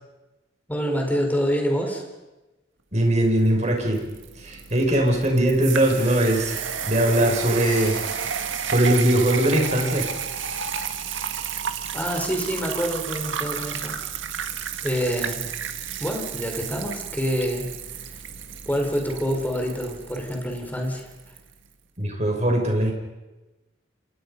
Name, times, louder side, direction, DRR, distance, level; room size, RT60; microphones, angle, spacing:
voice 1, 0.7-2.0 11.9-14.0 14.8-15.4 16.0-17.7 18.0-18.2 18.7-21.1, equal, 10° left, 2 dB, 4.6 m, -26 dB
voice 2, 2.9-4.0 4.3-8.0 8.6-10.1 10.3-10.6 22.0-22.9, right 1 dB, 40° right, 2 dB, 6.2 m, -21 dB
sound 1, 3.4-21.4, right 7 dB, 85° right, 1.9 m, -32 dB
sound 2, 7.6-9.7, left 4 dB, 25° left, 7.2 m, -44 dB
29.0 x 28.5 x 5.5 m, 1.1 s
head